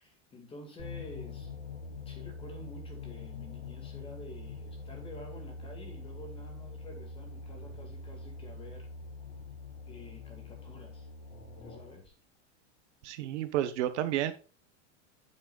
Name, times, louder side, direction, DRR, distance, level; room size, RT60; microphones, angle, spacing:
voice 1, 0.0-1.5 2.1-8.9 9.9-11.1 11.6-12.1, left 1 dB, 15° left, 4 dB, 2.0 m, -49 dB
sound 1, 0.8-12.1, left 3 dB, 45° left, 4.7 m, -44 dB
voice 2, 13.0-14.3, right 12 dB, 65° right, 11 dB, 1.2 m, -31 dB
9.8 x 7.9 x 2.4 m, 0.35 s
supercardioid pair, 175°, 38 cm